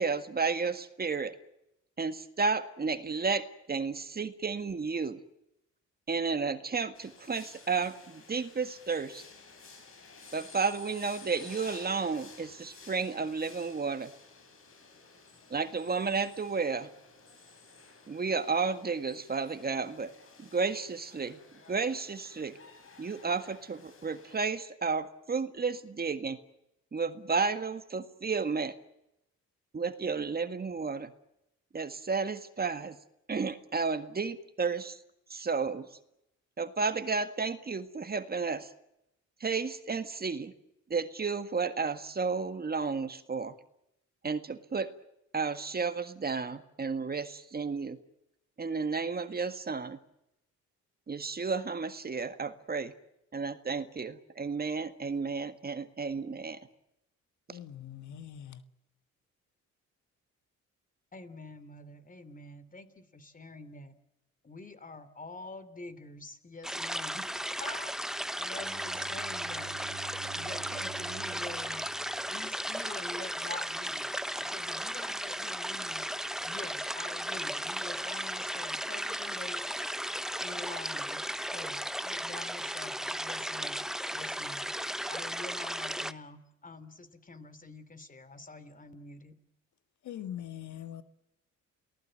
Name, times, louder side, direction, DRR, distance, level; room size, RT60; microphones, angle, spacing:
voice 1, 0.0-1.3 2.0-5.2 6.1-9.2 10.3-14.1 15.5-16.9 18.1-20.1 20.4-21.4 21.7-22.6 23.0-26.4 26.9-28.8 29.7-31.1 31.7-33.0 33.3-35.0 35.3-35.9 36.6-38.7 39.4-40.5 40.9-43.5 44.2-44.9 45.3-48.0 48.6-50.0 51.1-52.9 53.3-56.6 57.5-57.6, right 4 dB, 30° right, 1.8 m, -32 dB
sound 1, 6.9-24.4, left 4 dB, 45° left, 6.8 m, -53 dB
voice 2, 57.5-58.6 90.0-91.0, left 10 dB, 70° left, 1.7 m, -42 dB
voice 3, 61.1-63.9 64.4-67.9 68.4-69.8 70.3-71.9 72.3-74.1 74.4-76.1 76.4-79.6 80.4-81.2 81.5-84.7 85.1-89.3, left 3 dB, 25° left, 3.0 m, -46 dB
sound 2, 66.6-86.1, equal, ahead, 0.9 m, -35 dB
Bowed string instrument, 68.5-72.9, right 9 dB, 60° right, 1.2 m, -48 dB
29.5 x 19.0 x 7.7 m
cardioid pair, 90°, 30 cm